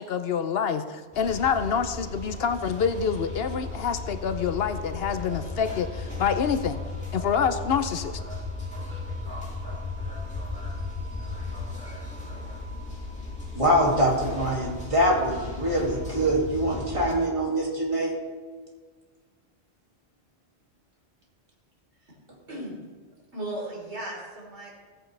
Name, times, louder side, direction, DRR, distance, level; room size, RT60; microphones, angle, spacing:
voice 1, 0.0-6.8 7.1-8.2, left 7 dB, 70° left, 9 dB, 0.9 m, -27 dB
sound 1, 1.1-17.1, left 3 dB, 5° left, 2.4 m, -36 dB
voice 2, 13.6-18.1, equal, 30° right, -3 dB, 2.5 m, -24 dB
voice 3, 23.3-24.7, right 1 dB, 85° right, -3 dB, 3.6 m, -36 dB
16.0 x 8.8 x 3.3 m, 1.5 s
omnidirectional pair, 1.1 m